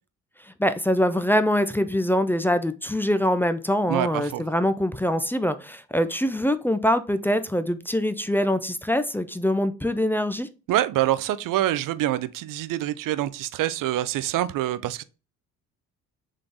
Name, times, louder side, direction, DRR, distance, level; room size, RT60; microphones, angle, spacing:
voice 1, 0.6-10.5, equal, 5° left, 0.4 m, -24 dB
voice 2, 3.9-4.4 10.7-15.0, right 13 dB, 55° right, 0.5 m, -25 dB
3.7 x 3.3 x 3.8 m
hypercardioid pair, 55°, 39 cm